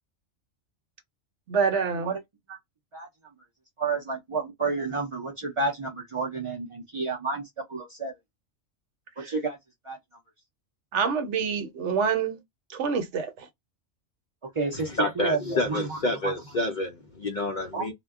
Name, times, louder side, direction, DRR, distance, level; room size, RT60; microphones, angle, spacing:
voice 1, 1.5-2.2 9.2-9.3 10.9-12.4 12.7-13.3, right 6 dB, 70° right, 0.9 m, -26 dB
voice 2, 3.8-7.4 7.7-8.1 9.2-9.6 9.8-10.0 14.5-14.9 15.2-15.4 15.7-16.0 16.2-16.3 17.7-17.9, right 4 dB, 55° right, 0.3 m, -30 dB
voice 3, 15.0-17.9, left 2 dB, 60° left, 0.5 m, -28 dB
2.1 x 2.1 x 3.4 m
omnidirectional pair, 1.3 m